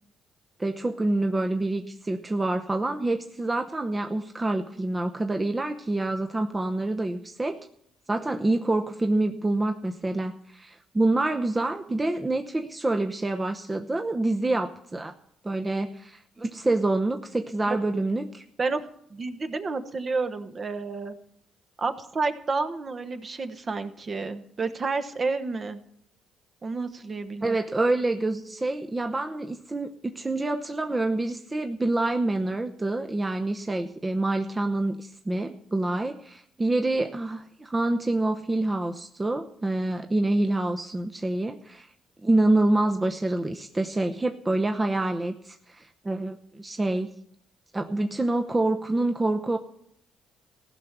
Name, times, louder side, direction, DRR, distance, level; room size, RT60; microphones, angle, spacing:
voice 1, 0.6-7.6 8.1-15.1 15.4-18.4 27.4-41.9 42.2-47.1 47.7-49.6, right 2 dB, 20° right, 5 dB, 0.8 m, -27 dB
voice 2, 19.1-21.2 21.8-25.8 26.6-27.6, right 4 dB, 40° right, 8 dB, 1.2 m, -30 dB
15.5 x 5.8 x 8.2 m, 0.69 s
supercardioid pair, 65°, 0 cm